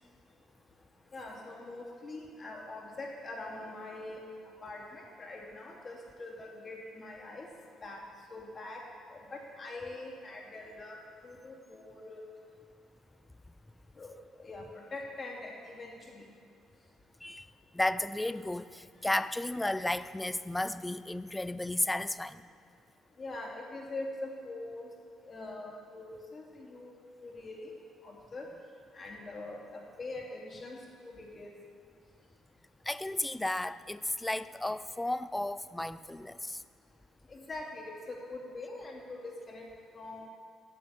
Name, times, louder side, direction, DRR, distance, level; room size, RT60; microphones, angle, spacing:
voice 1, 1.1-4.2 4.6-7.5 7.8-8.0 8.3-8.8 9.1-12.2 14.0-16.2 23.2-24.9 25.2-27.0 27.2-27.7 28.0-28.5 28.9-30.8 31.0-31.5 37.3-39.6 39.9-40.3, left 2 dB, 35° left, -1 dB, 2.6 m, -43 dB
voice 2, 17.2-22.4 32.9-36.6, left 1 dB, 10° left, 14 dB, 0.4 m, -33 dB
9.2 x 7.7 x 8.4 m, 2.3 s
cardioid pair, 90°, 0 cm